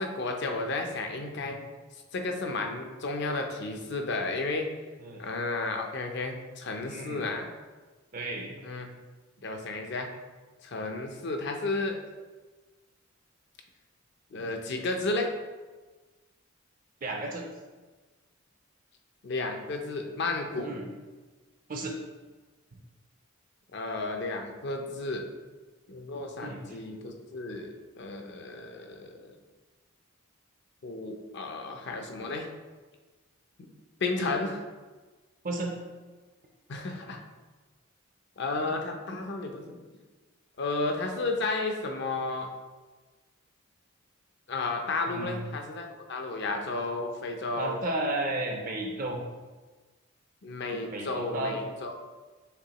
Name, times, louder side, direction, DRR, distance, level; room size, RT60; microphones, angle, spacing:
voice 1, 0.0-1.6 2.1-4.7 5.2-7.5 8.6-8.9 9.4-10.1 10.6-12.0 14.3-15.3 19.2-20.7 23.7-25.3 25.9-29.3 30.8-32.5 33.6-33.7 34.0-34.7 36.7-37.2 38.4-39.8 40.6-42.5 44.5-47.8 50.4-51.9, left 3 dB, 55° left, 3 dB, 0.5 m, -32 dB
voice 2, 6.9-7.2 8.1-8.5 17.0-17.5 20.6-20.9 21.7-22.0 24.8-24.9 26.4-26.8 35.4-35.7 45.1-45.5 47.6-49.2 50.9-51.7, right 2 dB, 40° right, 1 dB, 0.4 m, -33 dB
6.6 x 2.7 x 2.9 m, 1.3 s
head